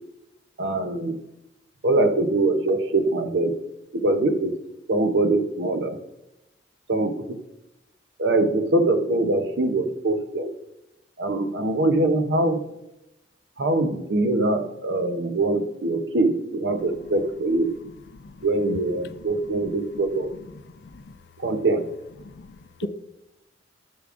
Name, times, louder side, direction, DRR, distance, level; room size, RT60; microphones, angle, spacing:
voice 1, 0.6-1.2 1.8-3.5 3.9-4.6 4.9-6.0 6.9-7.4 8.2-10.5 11.2-12.6 13.6-17.7 18.4-20.4 21.4-21.9, right 2 dB, 65° right, 8 dB, 0.7 m, -23 dB
voice 2, 20.8-21.2 22.2-22.9, left 4 dB, 60° left, 13 dB, 0.4 m, -39 dB
8.7 x 6.8 x 2.5 m, 0.89 s
head